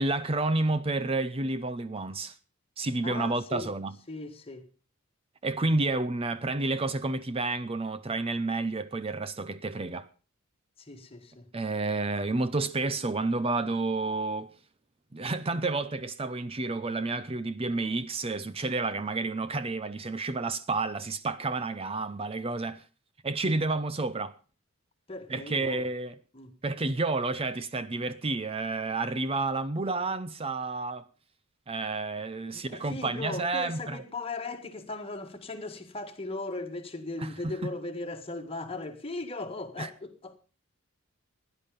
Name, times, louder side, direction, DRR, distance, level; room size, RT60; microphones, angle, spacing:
voice 1, 0.0-2.4 2.8-3.9 5.4-10.1 11.5-14.5 15.1-22.8 23.2-24.3 25.3-26.1 26.6-31.1 31.7-34.0 37.2-37.7 39.8-39.9, right 3 dB, 25° right, 0.6 m, -30 dB
voice 2, 3.0-3.7 4.1-4.7 10.8-11.5 25.1-25.9 26.3-26.6 32.5-40.4, left 2 dB, 25° left, 1.8 m, -38 dB
16.5 x 10.5 x 5.2 m
head